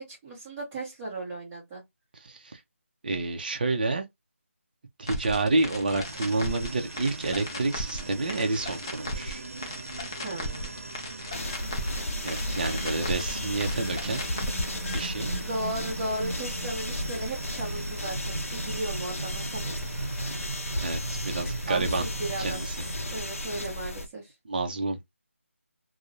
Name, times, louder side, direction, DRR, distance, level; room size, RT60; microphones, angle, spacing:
voice 1, 0.0-1.8 10.2-10.7 15.4-19.7 21.7-22.6 23.1-24.3, right 1 dB, 10° right, 0.8 m, -35 dB
voice 2, 2.1-2.6 3.0-4.0 5.0-9.4 12.2-14.2 14.9-15.3 20.8-22.0 22.4-22.9 24.4-25.0, right 3 dB, 40° right, 0.5 m, -29 dB
sound 1, 5.1-15.1, left 1 dB, 20° left, 0.4 m, -37 dB
sound 2, 6.0-23.7, right 3 dB, 85° right, 0.6 m, -39 dB
sound 3, 11.3-24.1, left 1 dB, 80° left, 0.6 m, -34 dB
2.4 x 2.0 x 2.6 m
figure-of-eight pair, 170°, 7 cm